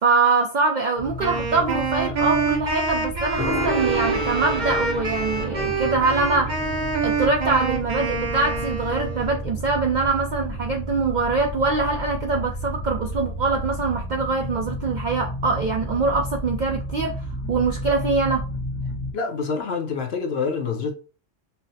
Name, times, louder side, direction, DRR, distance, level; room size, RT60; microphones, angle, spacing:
voice 1, 0.0-6.5 7.0-18.4, right 4 dB, 65° right, 0.4 m, -23 dB
sound 1, 1.0-19.1, equal, 85° left, 1.2 m, -32 dB
Wind instrument woodwind instrument, 1.2-9.4, right 4 dB, 40° right, 0.8 m, -26 dB
Gong, 3.4-10.8, right 1 dB, ahead, 0.5 m, -34 dB
voice 2, 19.1-20.9, left 5 dB, 60° left, 0.8 m, -26 dB
5.5 x 2.0 x 2.7 m
omnidirectional pair, 1.3 m